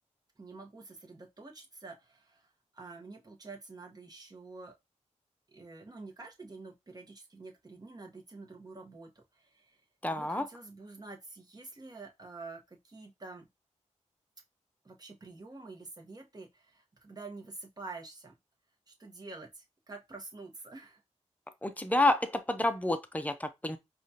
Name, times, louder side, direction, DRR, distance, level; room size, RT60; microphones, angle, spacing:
voice 1, 0.4-4.7 5.5-9.8 10.1-13.5 14.8-18.3 18.9-21.0, right 3 dB, 30° right, 1.1 m, -48 dB
voice 2, 10.0-10.5 21.6-23.8, left 2 dB, 10° left, 0.6 m, -29 dB
4.8 x 2.4 x 2.8 m
cardioid pair, 65°, 13 cm